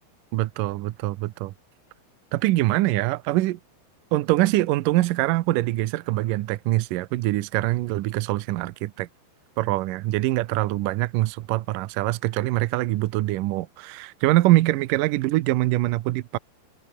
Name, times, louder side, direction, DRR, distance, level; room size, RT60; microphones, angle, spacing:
voice 1, 0.3-1.5 2.3-3.6 4.1-9.1 9.6-16.4, right 17 dB, 80° right, 1.9 m, -24 dB
omnidirectional pair, 4.8 m